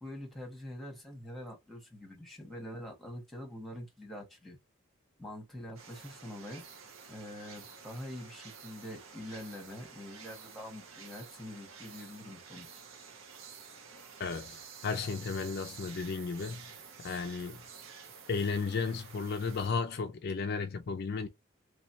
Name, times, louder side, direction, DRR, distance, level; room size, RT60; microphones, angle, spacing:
voice 1, 0.0-4.6 5.2-6.6 7.1-12.7, left 1 dB, ahead, 1.3 m, -45 dB
sound 1, 5.8-19.7, right 6 dB, 75° right, 1.0 m, -51 dB
voice 2, 14.2-16.6 17.0-17.6 18.3-21.3, left 5 dB, 50° left, 0.4 m, -34 dB
3.2 x 3.1 x 2.7 m
head